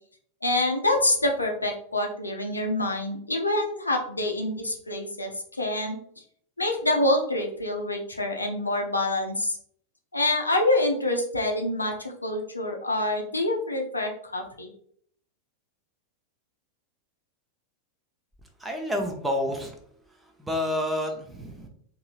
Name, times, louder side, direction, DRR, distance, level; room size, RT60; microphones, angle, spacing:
voice 1, 0.4-6.0 6.6-9.6 10.1-14.7, left 1 dB, 80° left, 2 dB, 0.5 m, -26 dB
voice 2, 18.6-19.8 20.4-21.7, left 1 dB, 5° right, 2 dB, 0.6 m, -29 dB
3.8 x 2.7 x 2.4 m, 0.62 s
figure-of-eight pair, 90°, 0 cm